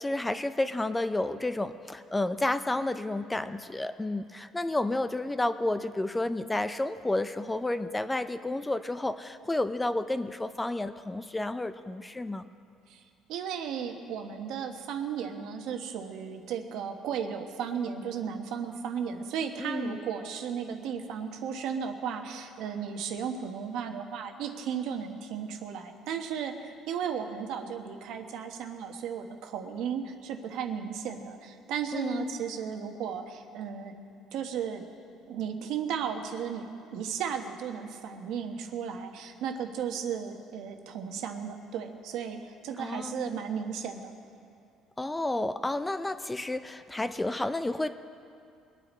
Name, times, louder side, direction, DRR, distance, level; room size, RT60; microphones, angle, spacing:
voice 1, 0.0-12.4 19.6-20.0 31.9-32.4 42.8-43.3 45.0-47.9, left 2 dB, 10° left, 11 dB, 0.4 m, -31 dB
voice 2, 13.3-34.0 34.3-34.8 35.3-44.1, right 7 dB, 70° right, 5 dB, 1.1 m, -35 dB
23.0 x 9.2 x 4.3 m, 2.4 s
cardioid pair, 140°, 0 cm